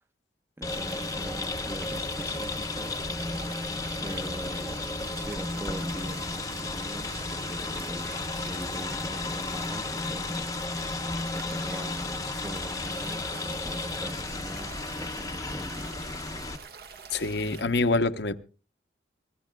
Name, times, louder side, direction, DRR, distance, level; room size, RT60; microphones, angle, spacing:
sound 1, 0.6-16.6, left 3 dB, 20° left, 0.8 m, -33 dB
voice 1, 0.6-2.9 4.0-10.8 11.3-15.9, right 1 dB, 15° right, 0.8 m, -42 dB
sound 2, 0.7-17.6, right 5 dB, 55° right, 1.5 m, -46 dB
sound 3, 1.7-17.7, right 2 dB, 90° right, 6.6 m, -57 dB
voice 2, 17.1-18.4, left 3 dB, 65° left, 0.8 m, -26 dB
25.5 x 16.0 x 2.3 m
head